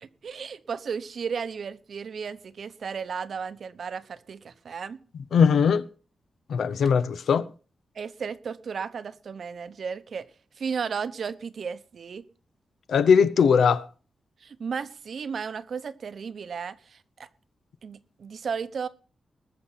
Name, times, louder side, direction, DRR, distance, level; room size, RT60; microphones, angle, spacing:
voice 1, 0.0-5.0 7.9-10.3 10.6-12.3 14.4-17.3 17.8-18.9, right 6 dB, 60° right, 0.9 m, -34 dB
voice 2, 5.3-5.8 6.5-7.5 12.9-13.9, left 6 dB, 85° left, 0.8 m, -20 dB
20.0 x 6.9 x 5.8 m
wide cardioid pair, 120°, 0 cm